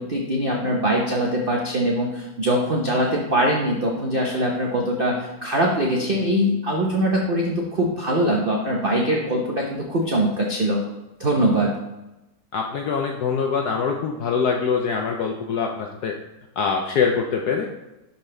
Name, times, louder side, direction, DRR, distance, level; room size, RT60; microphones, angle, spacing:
voice 1, 0.0-10.8 11.2-11.8, right 1 dB, 75° right, -1 dB, 0.5 m, -22 dB
voice 2, 12.5-16.1 16.6-17.7, left 5 dB, 75° left, 2 dB, 0.9 m, -24 dB
11.5 x 3.9 x 3.3 m, 0.97 s
omnidirectional pair, 2.3 m